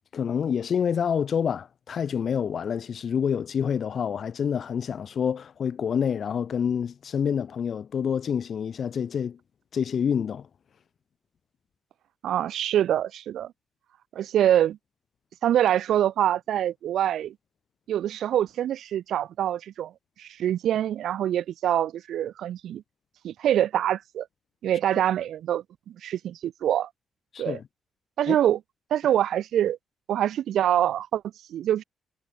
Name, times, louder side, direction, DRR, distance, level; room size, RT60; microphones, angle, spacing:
voice 1, 0.1-9.4 9.7-10.5 27.3-27.6 28.3-28.4, left 7 dB, 50° left, 4.1 m, -27 dB
voice 2, 12.2-13.5 14.1-14.8 15.4-17.3 17.9-19.9 20.2-22.8 23.2-24.3 24.6-26.9 27.4-27.6 28.2-28.6 28.9-29.8 30.1-31.2 31.5-31.8, right 11 dB, 80° right, 6.5 m, -25 dB
cardioid pair, 135°, 0 cm